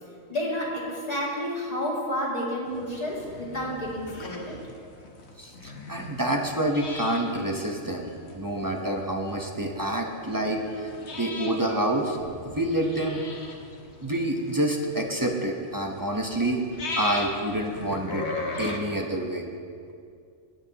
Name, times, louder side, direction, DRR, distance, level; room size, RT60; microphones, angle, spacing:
voice 1, 0.3-4.6, equal, 30° left, -5 dB, 2.2 m, -30 dB
sound 1, 2.6-18.8, left 2 dB, 60° left, 1.3 m, -39 dB
voice 2, 5.4-8.1 8.3-10.9 11.2-12.2 12.4-13.2 14.0-16.6 17.0-18.2 18.6-19.5, right 1 dB, 20° right, 1 dB, 0.7 m, -27 dB
18.0 x 8.8 x 2.9 m, 2.3 s
omnidirectional pair, 1.3 m